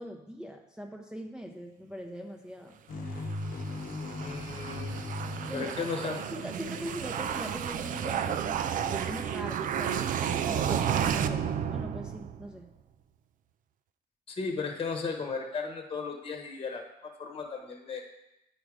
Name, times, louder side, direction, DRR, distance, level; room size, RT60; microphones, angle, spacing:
voice 1, 0.0-2.8 5.5-5.7 6.3-10.0 10.5-12.7, equal, 5° right, 1 dB, 0.7 m, -41 dB
sound 1, 2.9-6.6, left 2 dB, 55° left, 1.0 m, -38 dB
sound 2, 3.2-12.6, right 8 dB, 55° right, 0.5 m, -32 dB
voice 2, 4.2-5.1 5.5-6.2 14.3-18.0, left 4 dB, 30° left, 4 dB, 1.2 m, -35 dB
9.2 x 5.0 x 4.9 m, 0.89 s
cardioid pair, 110°, 17 cm